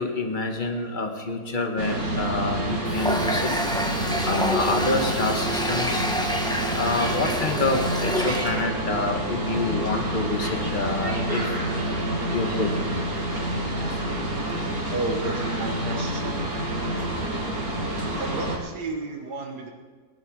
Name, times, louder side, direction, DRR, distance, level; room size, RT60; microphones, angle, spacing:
voice 1, 0.0-3.5 4.2-6.1 6.7-11.4 12.3-12.7 13.9-14.0, left 3 dB, 30° left, 4 dB, 1.7 m, -27 dB
sound 1, 1.8-18.6, right 1 dB, 60° right, 2.9 m, -28 dB
Water tap faucet, 2.9-8.6, equal, 5° left, 0.9 m, -28 dB
voice 2, 14.9-16.4 18.2-19.7, right 2 dB, 85° right, 2 dB, 2.0 m, -32 dB
20.0 x 11.0 x 4.8 m, 1.5 s
omnidirectional pair, 1.7 m